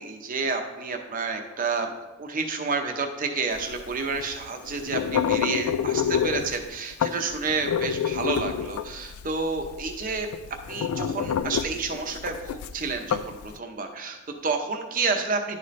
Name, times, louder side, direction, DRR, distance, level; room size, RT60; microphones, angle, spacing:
voice 1, 0.0-1.9 2.2-10.3 10.7-15.6, right 4 dB, 40° right, 4 dB, 0.7 m, -30 dB
sound 1, 3.6-13.5, left 8 dB, 90° left, 0.3 m, -28 dB
10.5 x 4.1 x 3.2 m, 1.1 s
head